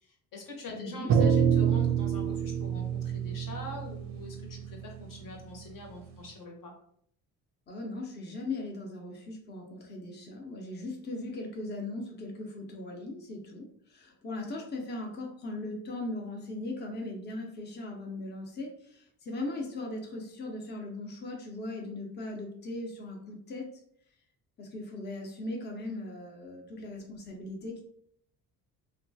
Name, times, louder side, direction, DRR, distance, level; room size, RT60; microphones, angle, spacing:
voice 1, 0.0-6.7, left 2 dB, 60° left, 0 dB, 1.0 m, -44 dB
voice 2, 0.7-1.1 7.7-23.7 24.6-27.8, left 2 dB, 30° left, 1 dB, 0.7 m, -39 dB
sound 1, 1.1-5.6, right 7 dB, 45° right, 0.5 m, -27 dB
2.8 x 2.3 x 2.6 m, 0.66 s
supercardioid pair, 75°, 37 cm